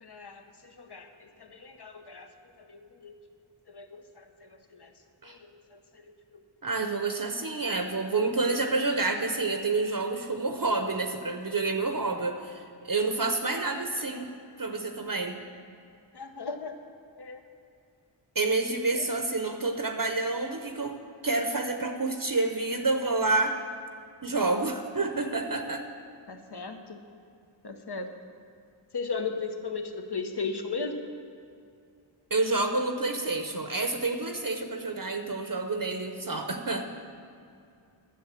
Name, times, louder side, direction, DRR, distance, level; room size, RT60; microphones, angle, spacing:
voice 1, 0.0-2.3 2.6-3.1 3.7-4.9 5.2-6.4 13.5-13.6 16.1-16.8 17.2-17.4 18.9-19.1 19.3-19.4 26.3-27.0 27.6-28.1 28.9-31.0, left 4 dB, 55° left, 5 dB, 1.1 m, -37 dB
voice 2, 6.6-14.3 14.6-15.4 18.3-21.0 21.2-23.6 24.2-25.8 32.3-36.9, right 3 dB, 45° right, 5 dB, 0.8 m, -28 dB
10.5 x 7.3 x 7.5 m, 2.4 s
wide cardioid pair, 50°, 48 cm